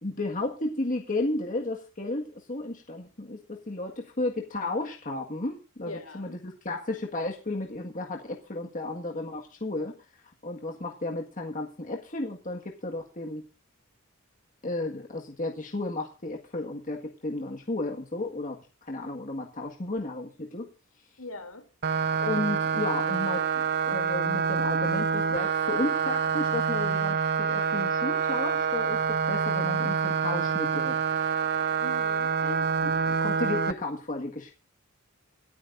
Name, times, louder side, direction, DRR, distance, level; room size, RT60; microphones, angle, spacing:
voice 1, 0.0-10.0 10.4-13.5 14.6-20.7 22.2-31.0 32.4-32.6 32.8-34.5, left 2 dB, 35° left, 1 dB, 1.7 m, -33 dB
voice 2, 5.8-6.4 21.2-21.7 31.8-32.3, left 2 dB, 70° left, 6 dB, 3.1 m, -41 dB
sound 1, 21.8-33.7, right 6 dB, 45° right, 0.6 m, -27 dB
26.5 x 8.9 x 2.6 m, 0.33 s
head